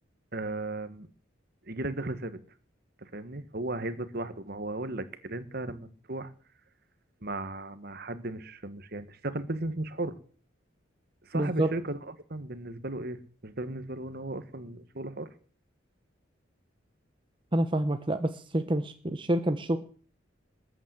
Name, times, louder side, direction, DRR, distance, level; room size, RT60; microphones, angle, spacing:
voice 1, 0.3-1.1 1.6-2.4 3.0-6.3 7.2-10.2 11.2-15.3, right 2 dB, 55° right, 12 dB, 1.6 m, -36 dB
voice 2, 11.3-11.7 17.5-19.8, right 1 dB, 25° right, 8 dB, 0.9 m, -27 dB
20.5 x 8.9 x 7.8 m, 0.43 s
head